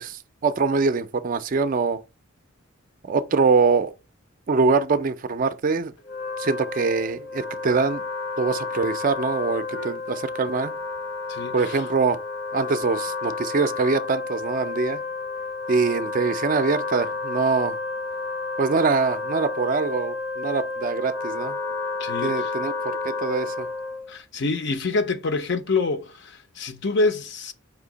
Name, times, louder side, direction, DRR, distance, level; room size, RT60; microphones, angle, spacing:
voice 1, 0.0-2.0 3.1-3.9 4.5-5.9 6.4-8.0 8.4-10.7 11.5-12.2 12.5-15.0 15.7-17.8 18.6-21.6 22.2-23.7, right 4 dB, 40° right, 0.4 m, -23 dB
Wind instrument woodwind instrument, 6.0-24.1, left 3 dB, 85° left, 1.2 m, -31 dB
voice 2, 11.3-11.8 22.0-22.5 24.1-27.5, left 3 dB, 55° left, 0.6 m, -26 dB
5.0 x 2.7 x 3.8 m
head